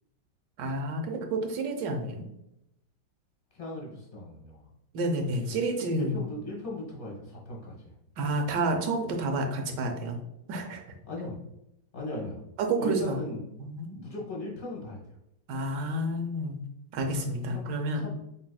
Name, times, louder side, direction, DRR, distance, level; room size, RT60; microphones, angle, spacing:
voice 1, 0.6-2.2 4.9-6.2 8.2-10.2 10.5-10.8 12.7-13.2 13.6-14.0 15.5-16.6 16.9-18.1, right 2 dB, 80° right, 4 dB, 1.4 m, -30 dB
voice 2, 3.5-4.7 6.0-7.9 11.1-11.4 11.9-12.4 12.8-13.4 13.9-15.2 17.5-17.7 17.9-18.1, left 1 dB, 30° left, -3 dB, 1.6 m, -38 dB
5.1 x 4.1 x 2.3 m, 0.82 s
omnidirectional pair, 1.8 m